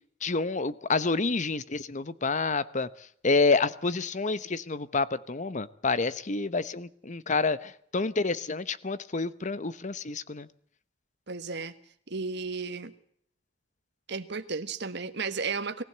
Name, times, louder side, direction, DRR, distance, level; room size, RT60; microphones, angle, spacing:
voice 1, 0.2-2.9 3.2-10.5, left 3 dB, 40° left, 15 dB, 0.9 m, -28 dB
voice 2, 11.3-11.7 12.1-12.9 14.1-15.8, right 4 dB, 65° right, 9 dB, 1.5 m, -33 dB
21.0 x 15.5 x 8.0 m, 0.65 s
head